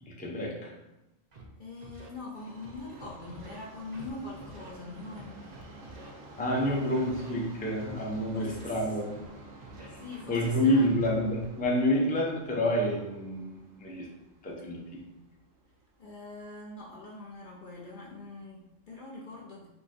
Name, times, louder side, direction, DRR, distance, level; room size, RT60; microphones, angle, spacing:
voice 1, 0.0-0.7 6.4-9.1 9.8-10.0 10.3-14.1 14.4-15.0, left 1 dB, 10° left, -2 dB, 0.5 m, -28 dB
Scratching (performance technique), 1.3-1.4 1.8-2.1 2.6-3.6 3.9-4.1 4.4-4.7 5.2-6.1 6.5-6.7 7.1-7.3 7.8-8.7 9.1-9.3 9.6-11.5, right 1 dB, 45° right, 0.6 m, -48 dB
voice 2, 1.6-5.5 6.0-6.3 6.6-6.8 8.3-8.7 9.9-10.9 16.0-19.7, left 2 dB, 50° left, -4 dB, 0.7 m, -43 dB
Subway metro underground, 2.3-16.5 16.8-16.9 17.7-17.8 18.1-18.2 18.8-18.9, right 2 dB, 85° right, 1.2 m, -51 dB
5.5 x 2.2 x 4.2 m, 0.95 s
omnidirectional pair, 1.4 m